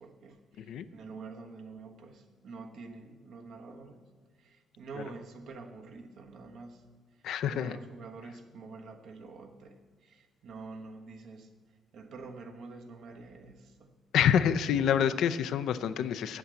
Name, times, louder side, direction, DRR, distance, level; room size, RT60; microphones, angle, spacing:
voice 1, 0.0-4.0 4.4-6.9 7.5-9.8 10.0-11.5 11.9-13.9 14.7-15.1, right 4 dB, 75° right, 4 dB, 1.2 m, -47 dB
voice 2, 7.2-7.8 14.1-16.4, left 9 dB, 80° left, 12 dB, 0.5 m, -27 dB
8.3 x 7.6 x 8.2 m, 1.5 s
cardioid pair, 90°, 0 cm